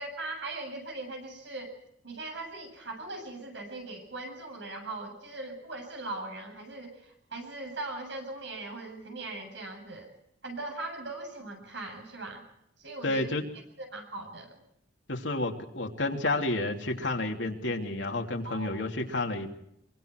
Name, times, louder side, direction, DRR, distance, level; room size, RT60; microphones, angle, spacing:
voice 1, 0.0-1.7 2.0-10.1 10.4-12.4 12.8-13.3 13.8-14.5 18.4-18.9, right 2 dB, 70° right, 4 dB, 7.9 m, -40 dB
voice 2, 13.0-13.5 15.1-19.5, left 2 dB, 75° left, 2 dB, 3.0 m, -30 dB
25.5 x 24.0 x 4.7 m, 0.76 s
head